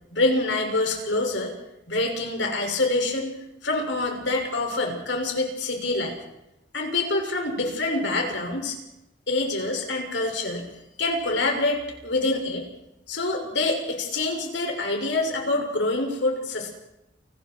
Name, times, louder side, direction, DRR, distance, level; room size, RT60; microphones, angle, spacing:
voice 1, 0.1-1.5 1.9-3.3 3.6-6.2 6.7-8.8 9.3-10.7 11.0-12.7 13.1-16.7, left 2 dB, 80° left, 2 dB, 6.6 m, -26 dB
29.0 x 21.0 x 4.8 m, 0.87 s
head